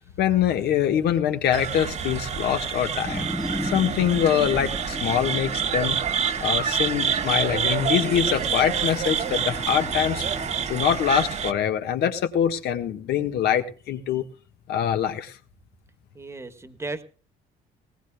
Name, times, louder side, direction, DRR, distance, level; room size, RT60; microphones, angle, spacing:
voice 1, 0.2-3.3 3.6-6.0 6.4-10.2 10.7-14.3 14.7-15.4, left 9 dB, 70° left, 7 dB, 1.6 m, -24 dB
sound 1, 1.5-11.5, right 7 dB, 40° right, 1.0 m, -27 dB
sound 2, 3.1-11.2, equal, ahead, 0.8 m, -37 dB
voice 2, 16.1-17.0, right 3 dB, 15° right, 9 dB, 1.4 m, -35 dB
19.5 x 18.0 x 2.3 m, 0.38 s
cardioid pair, 110°, 17 cm